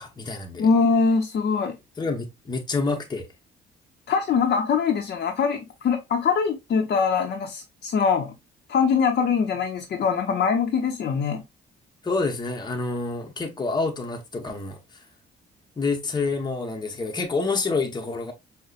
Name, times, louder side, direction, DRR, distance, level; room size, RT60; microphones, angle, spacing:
voice 1, 0.0-0.7 2.0-3.3 12.0-14.8 15.8-18.3, left 3 dB, 20° left, 0.9 m, -28 dB
voice 2, 0.6-1.7 4.1-8.3 8.7-11.4, left 5 dB, 55° left, 0.7 m, -23 dB
5.4 x 2.1 x 2.4 m
cardioid pair, 90°, 20 cm